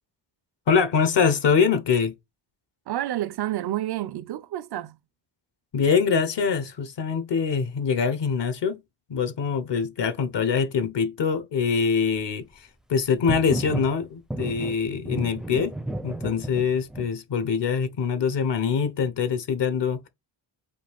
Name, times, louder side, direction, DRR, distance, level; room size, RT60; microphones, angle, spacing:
voice 1, 0.7-2.1 5.7-8.8 9.1-15.8 16.0-20.1, left 6 dB, 60° left, 1.0 m, -24 dB
voice 2, 2.9-5.0, right 13 dB, 55° right, 0.6 m, -29 dB
sound 1, 13.3-13.9 14.3-17.1, right 1 dB, ahead, 0.5 m, -32 dB
5.1 x 2.4 x 3.5 m
supercardioid pair, 55°, 49 cm